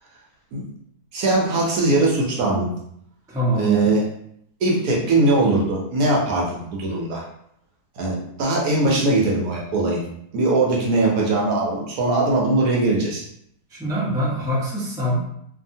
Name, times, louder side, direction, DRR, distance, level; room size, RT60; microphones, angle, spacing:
voice 1, 1.1-2.7 3.5-4.0 4.6-7.3 8.0-10.0 10.3-13.2, right 2 dB, 70° right, -3 dB, 1.1 m, -20 dB
voice 2, 3.3-3.9 13.7-15.2, equal, 5° right, -8 dB, 0.5 m, -24 dB
2.8 x 2.6 x 2.6 m, 0.71 s
omnidirectional pair, 1.8 m